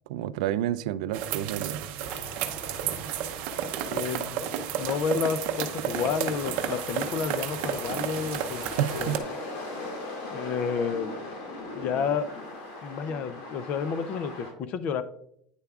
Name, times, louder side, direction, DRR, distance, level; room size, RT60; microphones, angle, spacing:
voice 1, 0.1-1.8 8.8-9.2, right 12 dB, 90° right, 0.3 m, -29 dB
sound 1, 1.1-9.2, right 9 dB, 50° right, 0.6 m, -32 dB
sound 2, 2.0-14.5, left 2 dB, 60° left, 2.2 m, -40 dB
voice 2, 3.8-4.4 4.8-8.6 8.9-9.2 10.3-11.2 11.7-12.3 12.8-15.0, left 6 dB, 35° left, 0.5 m, -30 dB
9.0 x 6.8 x 2.3 m
cardioid pair, 175°, 4 cm